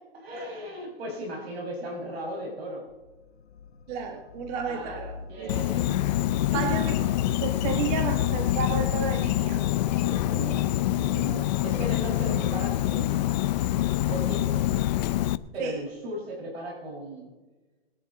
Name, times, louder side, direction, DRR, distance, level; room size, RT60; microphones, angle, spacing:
voice 1, 0.1-2.8 4.6-5.0 5.3-5.9 6.5-6.6 9.9-13.3 14.1-14.6 15.5-17.3, equal, 75° right, -2 dB, 5.8 m, -36 dB
sound 1, 2.9-9.7, left 6 dB, 75° left, 1.1 m, -41 dB
voice 2, 3.9-6.0 6.5-7.1 7.4-9.6 15.6-15.8, right 6 dB, 40° right, 5 dB, 1.4 m, -33 dB
Insect, 5.5-15.4, left 14 dB, 45° left, 0.5 m, -26 dB
21.5 x 10.0 x 4.1 m, 1.2 s
hypercardioid pair, 140°, 31 cm